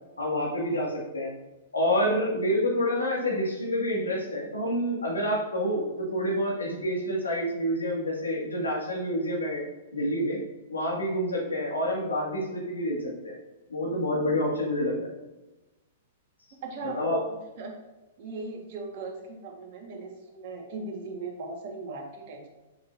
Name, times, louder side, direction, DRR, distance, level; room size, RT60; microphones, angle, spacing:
voice 1, 0.2-1.3 1.7-9.6 9.9-10.4 10.7-13.3 13.7-15.1 17.0-17.2, equal, 90° left, -2 dB, 2.1 m, -28 dB
voice 2, 16.6-17.8 18.2-22.5, right 3 dB, 50° right, 1 dB, 1.8 m, -39 dB
7.5 x 6.1 x 2.7 m, 1.1 s
hypercardioid pair, 115°, 0 cm